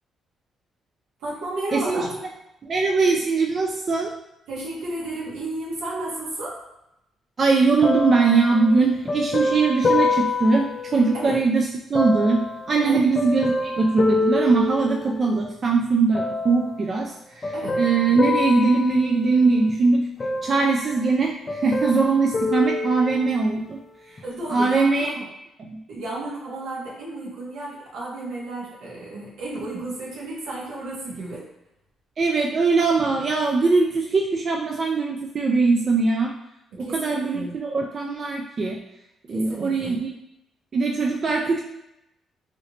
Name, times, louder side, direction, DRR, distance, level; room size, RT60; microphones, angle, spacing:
voice 1, 1.2-2.1 4.5-6.6 11.1-11.4 12.8-13.1 17.5-17.8 24.2-25.3 25.9-31.5 36.7-37.5 39.3-40.0, right 2 dB, 85° right, -5 dB, 1.2 m, -32 dB
voice 2, 1.7-2.2 2.6-4.1 7.4-20.1 20.4-23.8 24.5-25.1 25.7-25.8 32.2-36.3 36.8-38.8 39.3-40.1 40.7-41.6, right 4 dB, 45° right, 0 dB, 0.4 m, -21 dB
sound 1, 7.8-11.4 11.9-15.5 16.1-16.8 17.4-19.7 20.2-21.2 21.5-23.5 24.2-24.3, left 3 dB, 30° left, 0.4 m, -27 dB
3.1 x 2.8 x 2.8 m, 0.86 s
cardioid pair, 80°, 0 cm